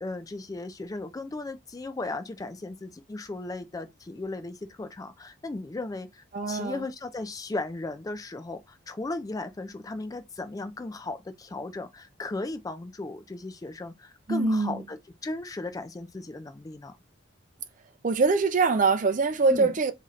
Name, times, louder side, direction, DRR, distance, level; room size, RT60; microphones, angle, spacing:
voice 1, 0.0-17.0 19.5-19.7, left 2 dB, 20° left, 0.3 m, -36 dB
voice 2, 6.3-6.8 14.3-14.8 18.0-19.9, right 4 dB, 40° right, 0.5 m, -23 dB
3.1 x 2.7 x 3.7 m
head